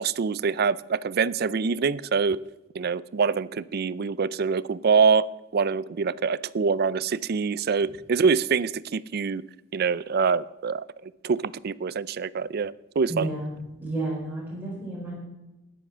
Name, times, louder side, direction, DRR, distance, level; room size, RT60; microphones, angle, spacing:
voice 1, 0.0-2.4 2.7-5.3 5.5-9.4 9.7-13.3, right 5 dB, 55° right, 19 dB, 0.4 m, -25 dB
voice 2, 13.1-13.5 13.8-15.2, right 2 dB, 10° right, -6 dB, 4.7 m, -31 dB
13.5 x 10.0 x 6.2 m, 0.96 s
head